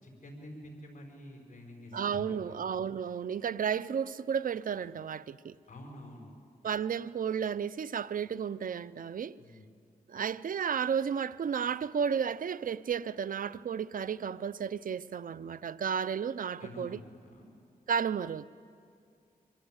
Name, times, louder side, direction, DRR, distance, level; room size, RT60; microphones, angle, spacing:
voice 1, 0.0-2.6 5.7-6.3 9.4-9.7 16.6-17.5, left 1 dB, 55° left, 6.1 m, -48 dB
voice 2, 1.9-5.6 6.6-9.4 10.1-17.0 17.9-18.4, right 7 dB, 65° right, 0.6 m, -33 dB
25.0 x 24.5 x 8.1 m
cardioid pair, 80°, 16 cm